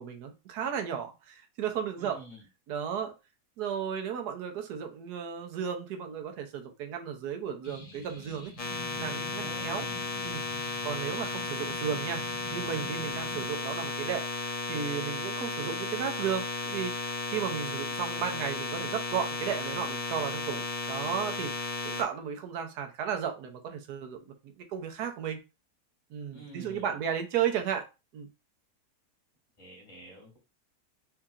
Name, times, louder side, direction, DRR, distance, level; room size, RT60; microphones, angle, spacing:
voice 1, 0.0-2.2 2.7-3.1 3.6-8.5 9.0-9.8 10.2-12.2 12.5-21.5 21.8-25.4 26.1-27.9 28.1-28.3, right 8 dB, 80° right, 5 dB, 1.3 m, -34 dB
voice 2, 2.0-2.4 9.4-10.1 26.3-27.0 29.6-30.4, right 2 dB, 30° left, -4 dB, 2.4 m, -48 dB
sound 1, 7.6-13.4, left 2 dB, 85° left, 1.8 m, -47 dB
sound 2, 8.6-22.0, left 3 dB, 65° left, 0.3 m, -34 dB
4.6 x 2.8 x 2.4 m, 0.27 s
omnidirectional pair, 1.7 m